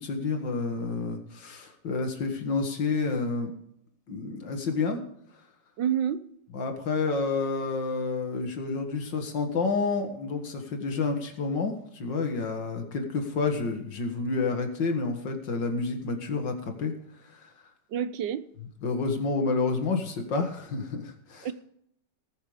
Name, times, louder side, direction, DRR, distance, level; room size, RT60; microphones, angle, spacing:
voice 1, 0.0-3.5 4.1-5.0 6.5-16.9 17.4-17.5 18.8-21.5, left 4 dB, 75° left, 2.5 m, -29 dB
voice 2, 5.8-6.2 17.9-18.4 21.4-21.5, right 9 dB, 75° right, 1.5 m, -28 dB
19.0 x 6.9 x 5.0 m
omnidirectional pair, 2.0 m